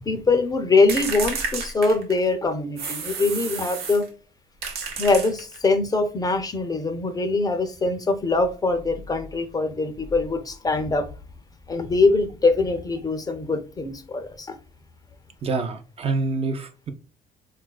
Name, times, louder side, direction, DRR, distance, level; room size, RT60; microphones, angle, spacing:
voice 1, 0.0-4.1 5.0-11.1 11.7-14.5, left 3 dB, 20° left, 0.5 m, -23 dB
sound 1, 0.9-2.3 2.8-4.1 4.6-5.7, right 4 dB, 70° right, 0.8 m, -31 dB
voice 2, 15.4-16.9, right 3 dB, 35° right, 0.5 m, -26 dB
4.1 x 2.3 x 2.2 m
cardioid pair, 110°, 17 cm